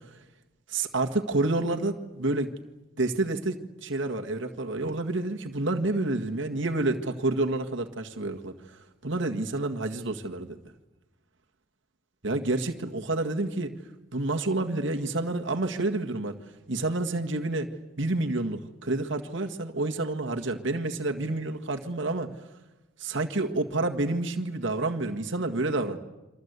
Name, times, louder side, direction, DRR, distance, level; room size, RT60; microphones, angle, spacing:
voice 1, 0.7-2.5 3.0-8.8 9.0-10.6 12.2-13.7 14.1-16.3 16.7-17.7 18.0-22.3 23.0-26.0, right 2 dB, 65° right, 3 dB, 1.8 m, -29 dB
29.0 x 25.0 x 8.2 m, 1.1 s
head